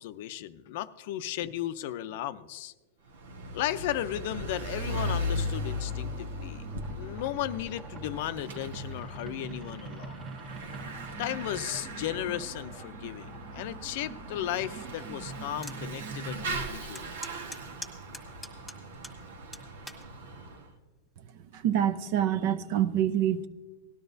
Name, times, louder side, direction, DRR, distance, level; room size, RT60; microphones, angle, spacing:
voice 1, 0.0-2.7 3.5-10.2 11.2-17.2, left 12 dB, 60° left, 13 dB, 0.5 m, -35 dB
Bicycle / Mechanisms, 3.1-20.7, equal, 90° right, 1.3 m, -38 dB
sound 1, 5.6-16.6, right 3 dB, 25° right, 1.2 m, -45 dB
sound 2, 15.6-15.8 16.3-16.4 16.9-19.2 19.5-20.0 20.8-21.1, left 1 dB, ahead, 1.5 m, -42 dB
voice 2, 21.5-23.5, right 10 dB, 50° right, 12 dB, 0.7 m, -26 dB
18.0 x 12.5 x 2.7 m, 1.3 s
supercardioid pair, 145°, 0 cm